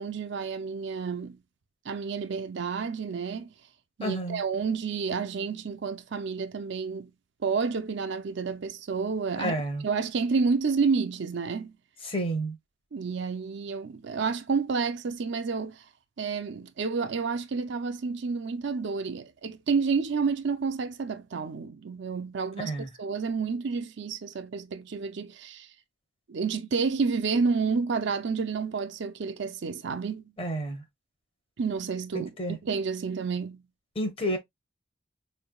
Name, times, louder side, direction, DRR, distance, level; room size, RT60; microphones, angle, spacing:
voice 1, 0.0-1.4 1.9-3.5 4.0-7.1 7.4-9.5 9.8-11.7 12.9-15.8 16.2-22.7 23.0-25.7 26.3-30.3 31.6-32.3 32.6-33.6, right 5 dB, 60° right, 0.5 m, -30 dB
voice 2, 4.0-4.4 9.4-9.8 12.0-12.6 22.6-22.9 30.4-30.8 32.1-32.6 33.9-34.4, right 1 dB, 30° left, 0.9 m, -30 dB
4.3 x 3.3 x 2.2 m
head